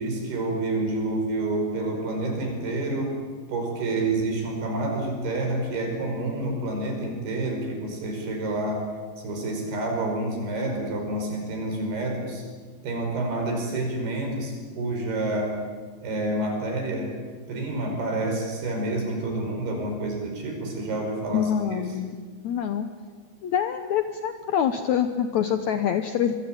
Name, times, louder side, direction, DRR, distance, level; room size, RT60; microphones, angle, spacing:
voice 1, 0.0-3.1 3.5-8.9 9.2-12.5 12.8-15.6 16.0-17.2 17.5-21.8, right 2 dB, 80° right, 2 dB, 7.3 m, -28 dB
voice 2, 21.3-22.1 22.4-22.9 23.4-26.4, left 9 dB, 75° left, 8 dB, 1.7 m, -25 dB
25.5 x 21.0 x 9.0 m, 1.5 s
omnidirectional pair, 4.6 m